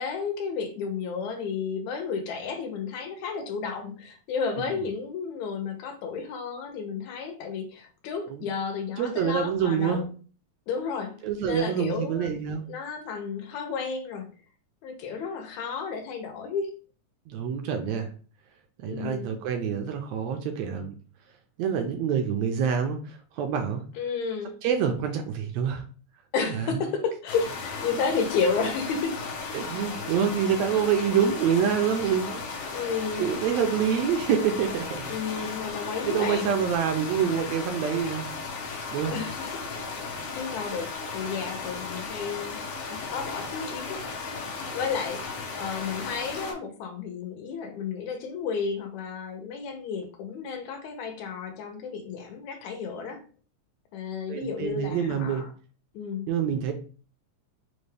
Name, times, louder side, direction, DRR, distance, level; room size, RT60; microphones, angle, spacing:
voice 1, 0.0-10.1 10.7-11.2 11.4-12.3 12.6-14.3 14.8-16.7 18.9-19.4 24.0-24.6 26.3-29.1 32.7-33.3 35.1-36.5 39.1-39.6 40.3-42.6 42.9-44.3 44.7-53.2 53.9-55.5 55.9-56.3, left 5 dB, 85° left, 2.0 m, -32 dB
voice 2, 9.0-10.0 11.2-12.6 17.3-18.1 18.8-20.9 21.6-23.8 24.6-25.8 26.5-26.8 29.5-32.5 33.2-35.1 35.4-35.6 36.0-38.3 38.9-39.1 54.3-55.4 56.3-56.7, right 7 dB, 80° right, 1.6 m, -26 dB
sound 1, 27.3-46.5, left 4 dB, 70° left, 1.5 m, -35 dB
5.1 x 2.2 x 3.2 m
omnidirectional pair, 3.3 m